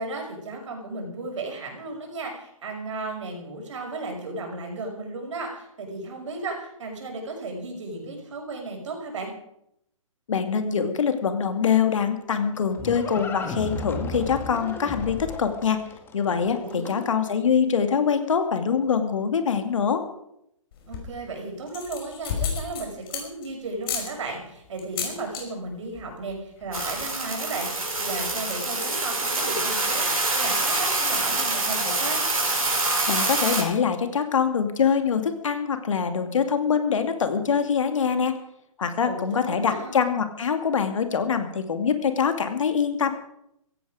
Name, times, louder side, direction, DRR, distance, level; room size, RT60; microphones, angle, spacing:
voice 1, 0.0-9.3 16.6-17.0 20.9-32.2 39.0-39.9, right 3 dB, 60° right, 1 dB, 6.1 m, -35 dB
voice 2, 10.3-15.8 16.1-20.0 33.1-38.4 38.8-43.1, left 6 dB, 65° left, 8 dB, 2.5 m, -24 dB
Livestock farm animals working animals, 12.2-17.2, left 3 dB, 10° left, 1.8 m, -35 dB
sound 1, 20.7-21.2 21.7-23.5 23.8-24.1 24.8-25.4 25.7-26.0 26.3-26.4 26.6-27.0, left 7 dB, 40° left, 5.3 m, -31 dB
sound 2, 26.7-33.6, right 2 dB, 90° right, 5.7 m, -25 dB
16.5 x 15.5 x 5.1 m, 0.78 s
figure-of-eight pair, 135°, 18 cm